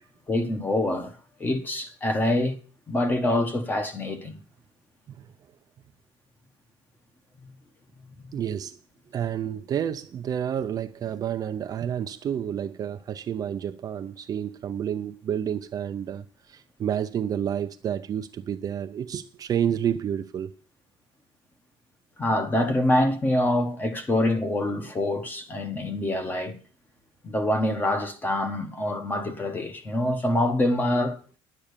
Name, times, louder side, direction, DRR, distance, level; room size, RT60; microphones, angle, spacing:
voice 1, 0.3-1.1 1.4-2.6 2.9-4.4 22.2-26.6 27.2-31.2, left 1 dB, 15° left, 1.3 m, -25 dB
voice 2, 8.3-8.8 9.1-20.5, right 9 dB, 35° right, 0.6 m, -30 dB
11.0 x 8.8 x 6.8 m
cardioid pair, 165°, 11 cm